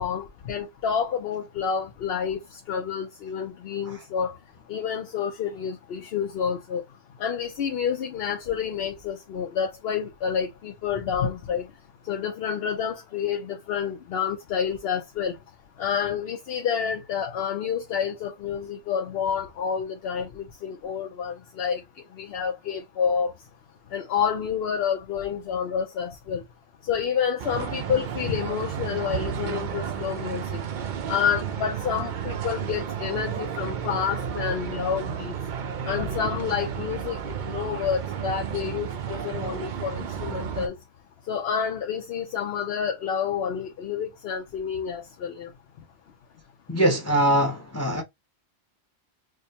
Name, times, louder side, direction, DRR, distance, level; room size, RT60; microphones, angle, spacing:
voice 1, 0.0-4.4 4.7-6.8 7.2-11.7 12.0-15.4 15.8-21.8 22.1-23.3 23.9-26.4 26.8-30.6 31.1-35.3 35.8-40.8 41.3-45.5, left 7 dB, 65° left, 0.8 m, -29 dB
sound 1, 27.4-40.7, right 8 dB, 55° right, 0.6 m, -32 dB
voice 2, 46.7-48.0, right 1 dB, 20° left, 0.6 m, -22 dB
4.9 x 2.1 x 2.8 m
omnidirectional pair, 1.2 m